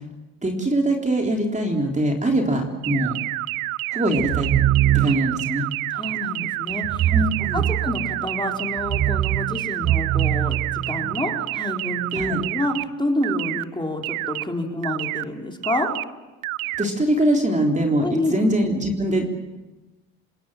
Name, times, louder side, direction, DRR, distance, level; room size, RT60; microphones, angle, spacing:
voice 1, 0.4-3.2 3.9-4.5 4.9-5.6 7.1-7.7 12.1-12.4 16.8-19.3, right 1 dB, 15° right, 2 dB, 3.7 m, -22 dB
voice 2, 2.3-2.7 5.9-7.1 7.4-10.6 10.9-15.9 18.0-18.4, left 1 dB, 10° left, 2 dB, 4.1 m, -28 dB
sound 1, 2.8-12.8 13.2-13.6 14.0-14.4 14.8-15.2 15.6-16.0 16.4-16.8, right 21 dB, 70° right, 0.7 m, -28 dB
sound 2, 4.2-5.5 6.8-8.3 8.8-11.3, right 12 dB, 35° right, 0.8 m, -23 dB
27.0 x 20.0 x 7.6 m, 1.1 s
hypercardioid pair, 60°, 44 cm